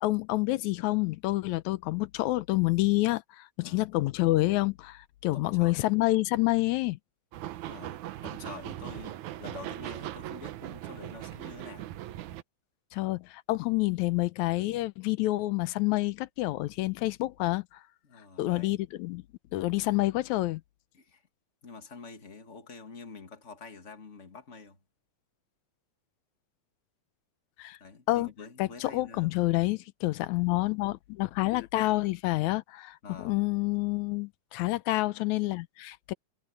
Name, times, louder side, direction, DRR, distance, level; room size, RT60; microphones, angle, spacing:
voice 1, 0.0-7.0 12.9-17.8 18.4-19.2 19.5-20.6 27.6-27.8 28.1-28.3 28.6-36.1, left 19 dB, 85° left, 2.0 m, -28 dB
voice 2, 5.3-5.8 7.7-11.9 18.0-18.8 20.9-21.2 21.6-24.8 27.8-29.3 33.0-33.5, left 4 dB, 30° left, 1.9 m, -47 dB
sound 1, 7.3-12.4, right 13 dB, 80° right, 2.3 m, -39 dB
omnidirectional pair, 3.4 m